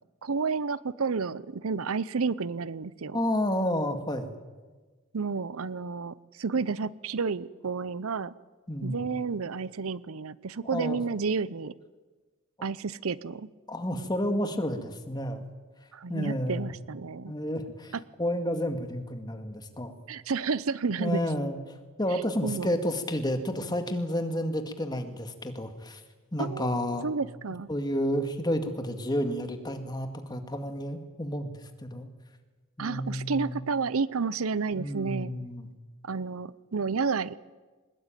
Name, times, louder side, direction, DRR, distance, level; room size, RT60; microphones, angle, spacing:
voice 1, 0.2-3.2 5.1-8.3 8.8-11.7 12.6-13.5 15.9-17.3 20.1-21.2 22.4-22.7 26.4-27.7 32.8-35.3 36.0-37.3, right 4 dB, 75° right, 19 dB, 0.7 m, -31 dB
voice 2, 3.1-4.4 8.7-9.0 10.7-11.0 13.7-15.4 16.1-16.7 17.3-19.9 21.0-21.6 22.0-26.0 26.3-27.1 27.7-31.5 31.8-32.1 32.8-33.6 34.7-35.7, equal, 20° left, 7 dB, 2.0 m, -30 dB
22.0 x 20.0 x 9.1 m, 1.3 s
head